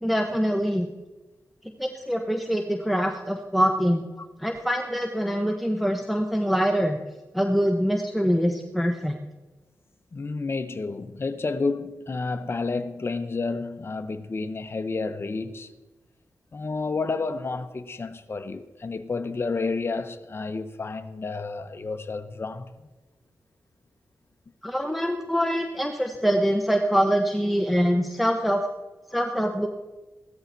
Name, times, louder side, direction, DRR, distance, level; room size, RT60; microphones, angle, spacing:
voice 1, 0.0-0.9 1.8-4.0 4.4-7.0 7.3-9.2 24.6-28.6 29.1-29.7, equal, ahead, 1.1 m, -24 dB
voice 2, 10.1-15.7 16.5-22.9, left 3 dB, 40° left, 0.9 m, -30 dB
15.5 x 13.0 x 4.1 m
wide cardioid pair, 80°, 6 cm